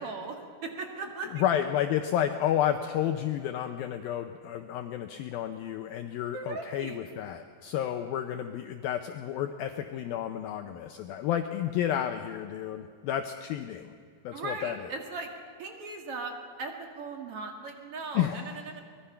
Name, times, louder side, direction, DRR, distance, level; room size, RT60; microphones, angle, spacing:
voice 1, 0.0-1.4 6.3-7.0 14.3-15.3 15.6-16.3 16.6-18.8, right 3 dB, 45° right, 3 dB, 2.1 m, -38 dB
voice 2, 1.2-13.9 14.2-14.9 18.2-18.6, left 10 dB, 80° left, 7 dB, 2.1 m, -31 dB
23.5 x 20.5 x 5.8 m, 2.1 s
omnidirectional pair, 5.0 m